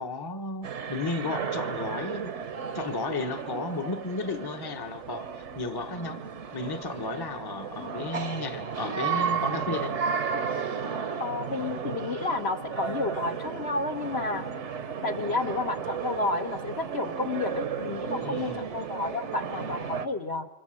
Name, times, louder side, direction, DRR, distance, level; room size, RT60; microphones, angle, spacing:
voice 1, 0.0-2.4 2.7-5.3 5.5-6.2 6.5-9.9 18.2-18.7, left 3 dB, 20° left, 1.1 m, -33 dB
sound 1, 0.6-20.1, right 6 dB, 60° right, 1.3 m, -34 dB
voice 2, 11.2-14.4 15.0-20.5, left 3 dB, 55° left, 1.5 m, -31 dB
29.5 x 25.5 x 7.7 m
omnidirectional pair, 1.4 m